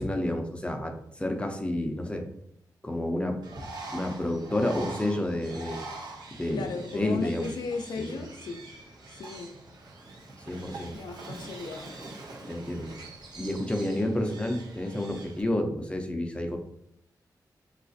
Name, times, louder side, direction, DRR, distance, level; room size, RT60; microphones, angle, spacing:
voice 1, 0.0-2.3 2.8-3.4 3.9-5.9 6.3-7.5 8.0-8.2 10.5-10.9 12.5-13.0 13.4-16.6, left 1 dB, 15° left, 3 dB, 0.5 m, -30 dB
Bird, 3.4-15.4, right 2 dB, 80° right, 0.7 m, -44 dB
voice 2, 6.5-8.6 9.1-9.5 10.9-12.0, left 4 dB, 80° left, 6 dB, 0.4 m, -35 dB
4.0 x 2.4 x 2.6 m, 0.72 s
wide cardioid pair, 95°, 7 cm